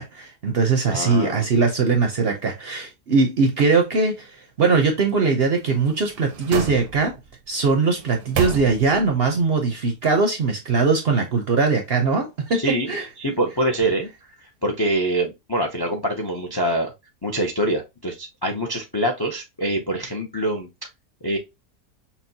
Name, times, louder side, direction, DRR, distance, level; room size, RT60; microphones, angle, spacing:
voice 1, 0.0-7.2 7.5-13.1, right 4 dB, 55° right, 0.7 m, -21 dB
voice 2, 0.9-1.5 12.5-14.1 14.4-16.9 17.2-20.7 21.2-21.4, right 1 dB, 30° left, 0.4 m, -25 dB
sound 1, 5.6-7.3 7.9-9.2 9.5-9.6, right 8 dB, 80° right, 1.2 m, -30 dB
5.7 x 2.3 x 2.7 m
omnidirectional pair, 1.6 m